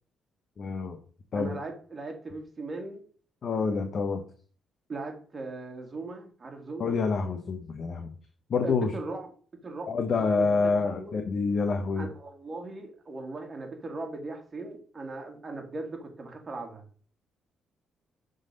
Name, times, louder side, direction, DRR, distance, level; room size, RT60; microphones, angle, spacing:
voice 1, 0.6-1.0 1.3-1.5 3.4-4.2 6.8-8.1 8.5-8.9 9.9-12.1, left 4 dB, 50° left, 6 dB, 0.9 m, -27 dB
voice 2, 1.3-3.0 4.9-6.9 8.6-9.3 9.6-11.2 12.0-16.8, right 3 dB, 35° right, 2 dB, 2.0 m, -39 dB
6.3 x 3.9 x 5.3 m, 0.43 s
cardioid pair, 90°, 0 cm